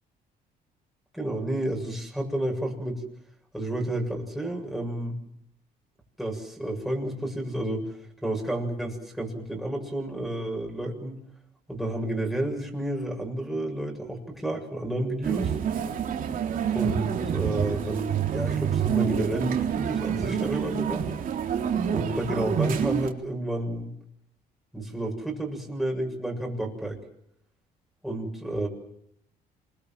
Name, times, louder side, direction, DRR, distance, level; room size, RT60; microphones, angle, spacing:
voice 1, 1.1-3.0 3.5-5.2 6.2-11.2 11.7-15.5 16.7-21.1 21.9-23.9 24.7-27.0 28.0-28.7, right 1 dB, ahead, 0 dB, 7.4 m, -31 dB
sound 1, 15.2-23.1, right 8 dB, 55° right, 3.6 m, -27 dB
27.0 x 22.5 x 7.6 m, 0.74 s
cardioid pair, 110°, 17 cm